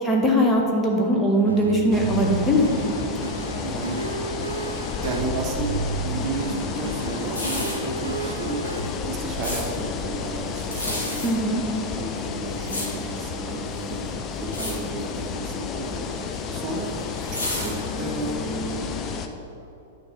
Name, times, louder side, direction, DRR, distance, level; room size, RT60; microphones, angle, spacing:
voice 1, 0.0-2.7 11.2-11.6, equal, 10° left, -1 dB, 0.9 m, -20 dB
sound 1, 1.5-8.9, right 4 dB, 75° right, 0.5 m, -32 dB
sound 2, 1.9-19.3, left 5 dB, 30° left, 0.5 m, -31 dB
voice 2, 2.9-4.1 5.0-14.1 14.4-18.7, right 2 dB, 30° right, 1 dB, 1.0 m, -33 dB
sound 3, 7.2-7.9 8.7-9.6 10.6-11.3 12.1-13.3 13.7-14.1 14.4-14.7 15.0-15.3 16.1-18.2 18.7-18.8, left 1 dB, 80° left, 1.9 m, -31 dB
9.3 x 6.2 x 3.5 m, 2.8 s
figure-of-eight pair, 100°, 0 cm